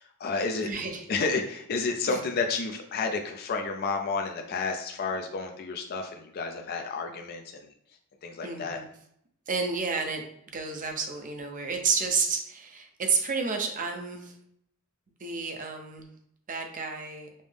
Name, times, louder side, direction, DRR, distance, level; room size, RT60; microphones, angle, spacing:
voice 1, 0.0-0.7 1.1-7.7 8.2-8.8, left 4 dB, 45° left, 4 dB, 0.4 m, -31 dB
voice 2, 0.6-1.1 2.1-2.2 8.4-8.9 9.5-10.2 10.5-14.3 15.2-16.1 16.5-17.3, right 4 dB, 40° right, 4 dB, 0.6 m, -30 dB
5.3 x 2.0 x 3.3 m, 0.70 s
head